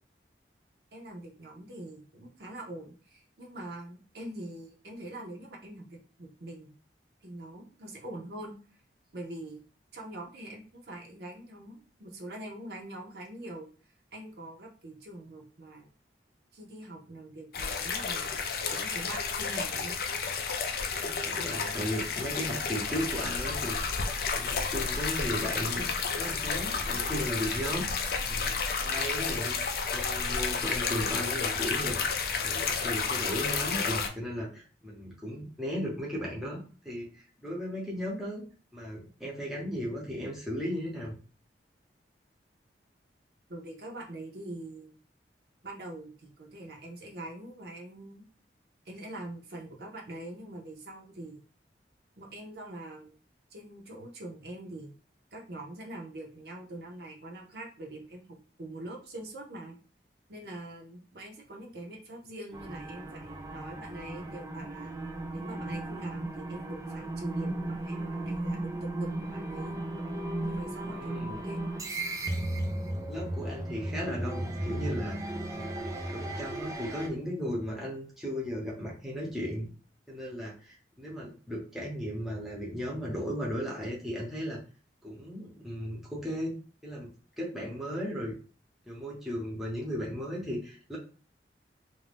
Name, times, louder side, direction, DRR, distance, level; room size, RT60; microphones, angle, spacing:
voice 1, 0.9-6.7 7.2-8.6 9.1-9.6 9.9-13.7 14.1-15.9 16.5-18.4 18.7-20.0 43.5-45.0 45.6-48.2 48.9-51.4 52.2-53.2 53.5-54.9 55.3-58.2 58.6-59.8 60.3-64.9 65.3-69.8 70.5-71.9, right 1 dB, 60° right, 0 dB, 0.6 m, -43 dB
sound 1, 17.5-34.1, left 5 dB, 55° left, 0.4 m, -31 dB
voice 2, 21.0-24.0 24.3-25.9 26.1-27.9 28.3-28.6 28.8-29.6 29.9-32.0 32.4-37.1 37.4-38.4 38.7-41.2 70.8-71.4 73.1-75.6 76.1-79.7 80.1-84.6 85.0-86.5 86.8-87.1 87.4-88.3 88.9-91.0, equal, ahead, -4 dB, 0.7 m, -36 dB
sound 2, 62.5-77.1, right 1 dB, 20° right, 0.3 m, -35 dB
2.5 x 2.2 x 3.3 m, 0.37 s
head